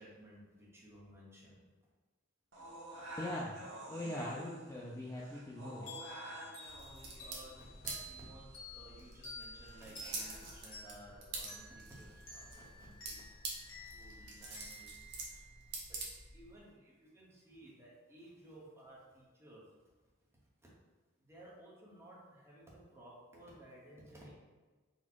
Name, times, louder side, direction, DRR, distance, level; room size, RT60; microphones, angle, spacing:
voice 1, 0.0-1.6 2.9-3.1 5.2-5.3 7.2-19.6 21.2-24.3, right 1 dB, 15° right, -6 dB, 1.0 m, -57 dB
sound 1, 2.5-10.5, right 1 dB, 75° right, 1.2 m, -51 dB
voice 2, 3.2-5.9, left 1 dB, 15° left, -5 dB, 0.4 m, -41 dB
sound 2, 5.9-16.1, left 1 dB, 70° left, 1.3 m, -52 dB
sound 3, 6.6-16.6, right 3 dB, 55° right, 0.9 m, -47 dB
4.2 x 2.3 x 4.5 m, 1.4 s
head